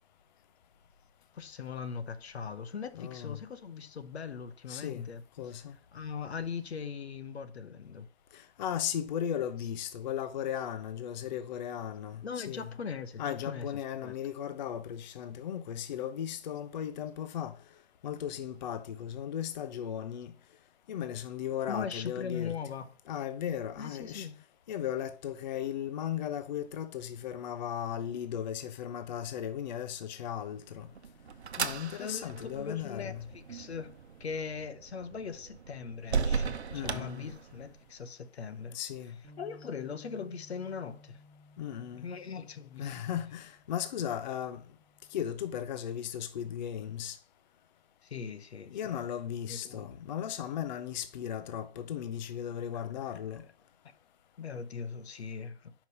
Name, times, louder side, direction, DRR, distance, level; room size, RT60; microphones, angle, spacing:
voice 1, 1.3-5.6 5.9-8.1 9.6-9.7 10.6-10.7 12.2-14.2 21.7-22.9 23.7-24.4 32.0-33.9 34.2-41.2 41.9-42.9 43.3-43.4 48.0-49.1 49.5-49.9 52.7-53.4 54.4-55.7, left 6 dB, 75° left, 0.8 m, -40 dB
voice 2, 2.9-3.4 4.7-5.1 5.4-5.8 8.3-12.7 13.2-17.6 18.0-20.3 20.9-22.5 23.1-24.3 24.7-30.9 31.6-33.3 36.7-37.3 38.7-39.2 41.6-42.1 42.8-44.6 45.1-47.2 48.7-53.4, left 9 dB, 45° left, 0.5 m, -36 dB
sound 1, 30.5-37.9, right 6 dB, 75° right, 0.8 m, -37 dB
Bass guitar, 39.2-45.5, left 2 dB, 20° right, 1.2 m, -58 dB
5.3 x 5.1 x 5.1 m
figure-of-eight pair, 130°, 33 cm